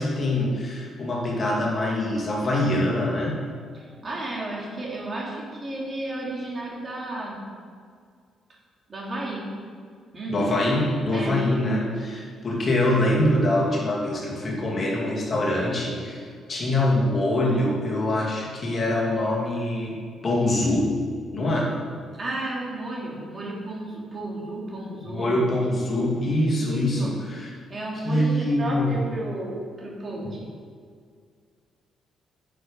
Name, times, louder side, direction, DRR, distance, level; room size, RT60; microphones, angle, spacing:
voice 1, 0.0-3.4 10.3-20.0 20.2-20.9 21.3-21.7 25.1-27.5 28.0-29.0 30.2-30.3, left 1 dB, 40° left, -3 dB, 2.5 m, -24 dB
voice 2, 3.7-7.4 8.9-9.5 10.1-10.6 11.1-11.4 22.1-25.3 26.6-27.1 27.7-30.5, right 1 dB, 35° right, -4 dB, 2.9 m, -33 dB
9.9 x 6.8 x 5.4 m, 2.1 s
cardioid pair, 90°, 0 cm